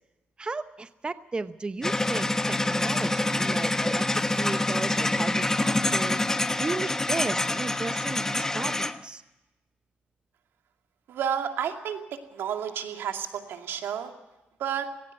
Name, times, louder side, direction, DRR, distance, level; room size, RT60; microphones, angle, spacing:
voice 1, 0.4-6.2 6.6-9.2, right 3 dB, 25° right, 11 dB, 0.8 m, -35 dB
sound 1, 1.8-9.0, left 2 dB, 15° left, 1.0 m, -26 dB
voice 2, 11.1-12.0 12.3-14.1 14.6-14.9, right 8 dB, 85° right, 5 dB, 2.4 m, -31 dB
18.5 x 18.0 x 7.8 m, 1.0 s
cardioid pair, 95°, 4 cm